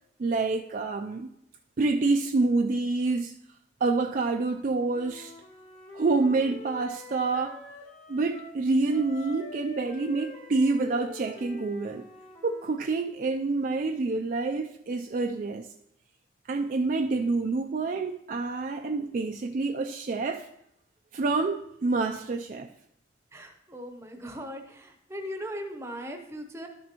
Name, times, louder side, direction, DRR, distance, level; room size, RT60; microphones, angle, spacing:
voice 1, 0.2-1.3 1.8-3.4 3.8-5.3 5.9-7.6 8.1-12.1 12.4-15.7 16.5-20.5 21.1-22.7, right 3 dB, 45° right, 0.3 m, -27 dB
Wind instrument woodwind instrument, 4.9-8.6 8.9-12.9, left 2 dB, 35° left, 1.2 m, -45 dB
voice 2, 23.3-26.7, equal, 15° right, 0.7 m, -39 dB
12.5 x 6.0 x 2.9 m
head